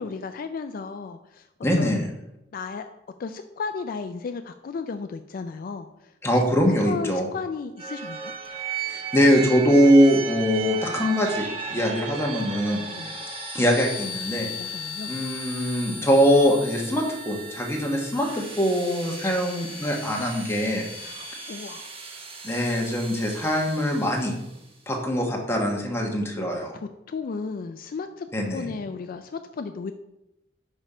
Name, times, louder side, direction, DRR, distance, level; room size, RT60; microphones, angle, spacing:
voice 1, 0.0-1.5 1.8-2.0 2.5-2.9 3.2-8.3 12.9-13.3 14.6-15.1 21.0-21.9 26.1-26.2 26.7-29.9, left 4 dB, 55° left, 8 dB, 0.3 m, -35 dB
voice 2, 1.6-2.0 6.2-7.3 8.9-12.8 13.5-14.5 15.1-20.8 22.4-24.3 24.9-26.7 28.3-28.7, equal, 15° left, 0 dB, 1.2 m, -22 dB
sound 1, 7.8-24.5, right 3 dB, 35° right, 0.9 m, -36 dB
5.5 x 5.2 x 4.9 m, 0.89 s
head